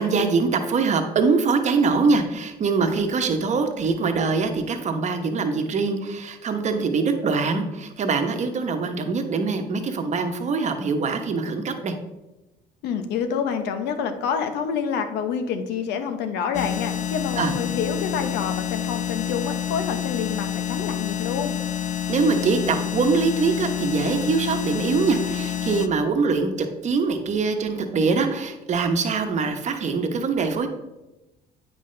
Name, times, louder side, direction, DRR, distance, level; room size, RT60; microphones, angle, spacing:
voice 1, 0.0-11.9 17.4-17.5 22.1-30.7, right 4 dB, 45° right, 5 dB, 1.0 m, -23 dB
voice 2, 12.8-21.6, left 7 dB, 90° left, 8 dB, 0.8 m, -27 dB
sound 1, 16.5-25.9, left 9 dB, 45° left, 0.4 m, -28 dB
9.0 x 5.4 x 3.3 m, 0.99 s
cardioid pair, 110°, 17 cm